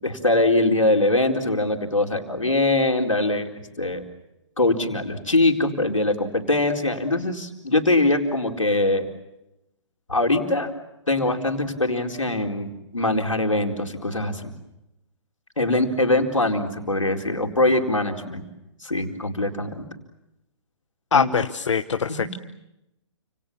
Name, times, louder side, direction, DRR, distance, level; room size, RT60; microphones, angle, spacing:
voice 1, 0.0-3.5 3.8-4.0 4.6-9.1 10.1-10.7 11.1-14.5 15.6-18.4 18.8-19.8 21.1-21.3 22.2-22.4, left 2 dB, 90° left, 2 dB, 4.3 m, -22 dB
voice 2, 21.1-22.3, left 6 dB, 70° left, 9 dB, 1.1 m, -23 dB
29.5 x 27.5 x 7.2 m, 0.90 s
figure-of-eight pair, 125°, 16 cm